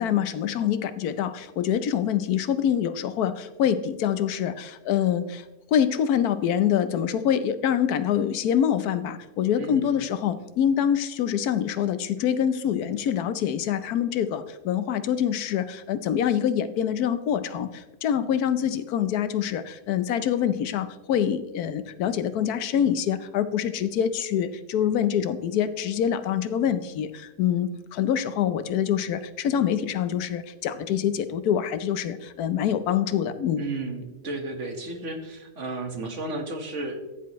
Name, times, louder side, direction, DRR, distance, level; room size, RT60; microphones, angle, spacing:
voice 1, 0.0-5.4 5.7-33.6, left 9 dB, 75° left, 12 dB, 1.2 m, -25 dB
voice 2, 9.6-9.9 33.6-37.0, right 2 dB, 50° right, 5 dB, 1.7 m, -33 dB
14.5 x 10.5 x 3.1 m, 1.1 s
omnidirectional pair, 1.7 m